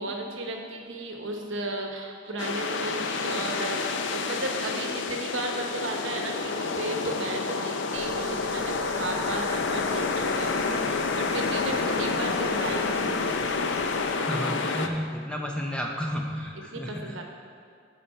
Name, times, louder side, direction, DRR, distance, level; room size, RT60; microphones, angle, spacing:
voice 1, 0.0-13.7 14.4-14.6 16.7-17.2, right 2 dB, 65° right, 2 dB, 1.0 m, -34 dB
sound 1, 2.4-14.9, left 4 dB, 60° left, 0.5 m, -29 dB
sound 2, 7.9-14.2, right 4 dB, 50° right, 0.6 m, -48 dB
voice 2, 14.3-17.2, equal, 5° left, 0 dB, 0.5 m, -32 dB
8.5 x 5.4 x 5.6 m, 2.2 s
head